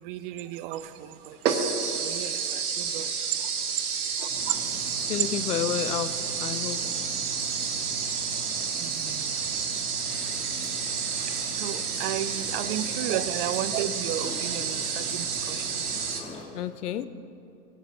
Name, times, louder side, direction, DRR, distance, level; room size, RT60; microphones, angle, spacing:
voice 1, 0.0-1.4 1.9-3.1 4.2-4.6 8.8-9.4 11.5-15.9, right 12 dB, 35° right, 14 dB, 0.5 m, -34 dB
sound 1, 0.8-0.9 1.4-16.2, right 6 dB, 65° right, 1.5 m, -30 dB
sound 2, 4.3-16.5, left 1 dB, 15° left, 2.2 m, -42 dB
voice 2, 5.1-6.8 13.0-13.1 16.5-17.1, left 10 dB, 70° left, 13 dB, 0.8 m, -30 dB
22.0 x 10.0 x 3.0 m, 2.8 s
figure-of-eight pair, 95°, 48 cm